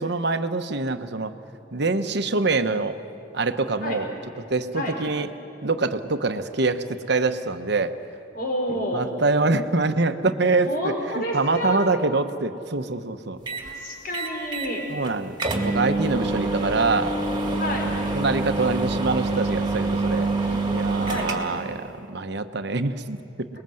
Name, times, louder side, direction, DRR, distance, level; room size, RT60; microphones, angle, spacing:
voice 1, 0.0-1.3 1.7-3.0 3.3-4.1 4.5-5.3 5.6-7.9 8.9-13.4 14.9-17.1 17.5-17.6 18.1-20.3 20.7-23.5, right 3 dB, 60° right, 9 dB, 1.0 m, -25 dB
voice 2, 8.3-9.1 10.6-11.8 13.6-14.8 17.6-17.9 20.5-21.3, equal, 50° left, 0 dB, 4.7 m, -29 dB
sound 1, 13.5-13.7 14.1-14.7 15.1-15.2 15.4-21.7, right 3 dB, 25° right, 2.1 m, -26 dB
28.5 x 21.0 x 7.8 m, 2.8 s
head